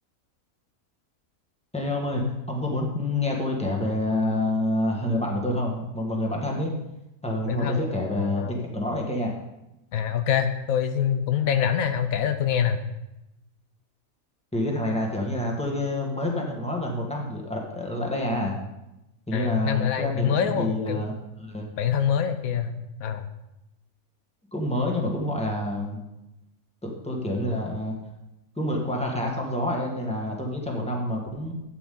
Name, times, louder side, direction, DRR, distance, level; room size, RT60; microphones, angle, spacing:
voice 1, 1.7-2.2 2.5-6.7 7.2-9.3 14.5-18.5 19.3-21.7 24.5-26.0 26.8-27.9 28.6-31.5, left 1 dB, 5° left, -1 dB, 1.6 m, -28 dB
voice 2, 7.5-8.6 9.9-12.8 19.3-21.0 21.8-22.7 23.0-23.3, left 8 dB, 75° left, 8 dB, 1.1 m, -25 dB
12.5 x 8.5 x 3.8 m, 0.93 s
omnidirectional pair, 1.5 m